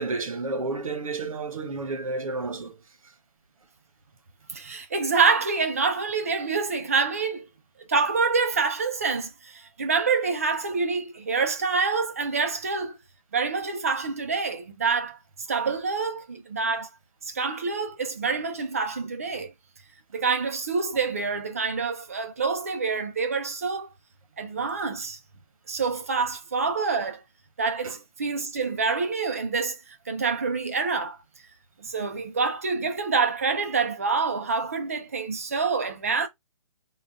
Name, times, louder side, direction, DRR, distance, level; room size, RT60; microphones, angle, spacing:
voice 1, 0.0-2.8 27.8-27.9, right 3 dB, 80° right, 1.0 m, -31 dB
voice 2, 4.5-7.4 7.9-13.0 13.3-15.2 15.5-16.9 17.3-19.5 20.1-23.9 24.4-25.2 25.7-27.2 27.6-31.2 31.8-36.3, right 4 dB, 25° right, 0.4 m, -26 dB
3.7 x 2.2 x 3.8 m
hypercardioid pair, 175°, 17 cm